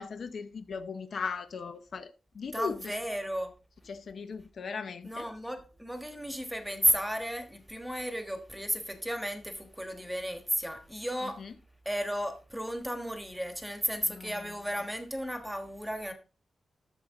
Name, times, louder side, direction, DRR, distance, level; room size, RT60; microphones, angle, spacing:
voice 1, 0.0-3.0 3.9-5.3 11.2-11.5 14.0-14.6, left 5 dB, 50° left, 0.7 m, -38 dB
voice 2, 2.5-3.5 5.0-11.4 11.8-16.1, equal, ahead, 1.4 m, -33 dB
12.5 x 7.2 x 3.7 m
wide cardioid pair, 175°, 0 cm